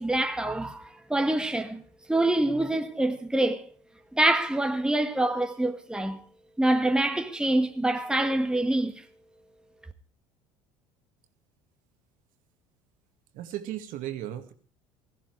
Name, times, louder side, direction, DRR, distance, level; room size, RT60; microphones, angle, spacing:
voice 1, 0.0-1.8 2.1-3.7 4.1-6.2 6.6-8.9, right 1 dB, 5° right, 1.5 m, -25 dB
voice 2, 13.3-14.5, right 12 dB, 60° right, 2.0 m, -35 dB
16.5 x 14.5 x 4.8 m
hypercardioid pair, 70°, 16 cm